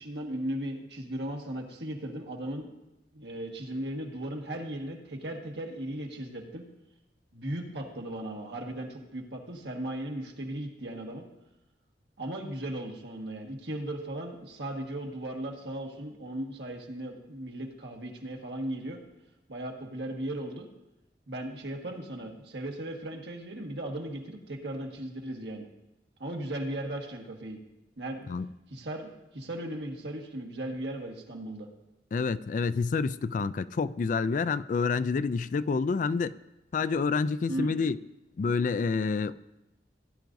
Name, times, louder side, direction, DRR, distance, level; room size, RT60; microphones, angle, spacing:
voice 1, 0.0-2.7 3.1-6.6 7.3-11.2 12.2-19.0 19.5-20.7 21.3-25.7 26.2-27.6 28.0-28.3 28.7-31.7 37.5-37.8, right 1 dB, 80° right, 2 dB, 1.6 m, -37 dB
voice 2, 32.1-36.3 36.7-38.0 38.4-39.3, left 4 dB, 45° left, 15 dB, 0.3 m, -28 dB
17.0 x 10.5 x 2.6 m, 0.95 s
head